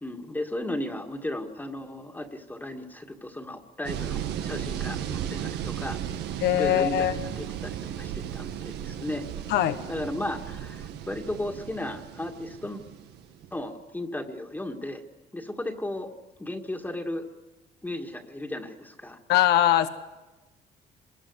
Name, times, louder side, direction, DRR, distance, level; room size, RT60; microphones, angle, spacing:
voice 1, 0.0-6.0 6.5-7.1 7.4-9.3 9.8-12.8 13.5-15.0 15.3-16.1 16.4-17.3 17.8-19.2, left 1 dB, 10° left, 3 dB, 2.0 m, -35 dB
sound 1, 3.8-13.6, right 10 dB, 80° right, 1.5 m, -35 dB
voice 2, 6.4-7.1 9.5-9.8 19.3-19.9, left 12 dB, 80° left, 10 dB, 1.3 m, -21 dB
25.0 x 21.0 x 8.2 m, 1.1 s
cardioid pair, 110°, 17 cm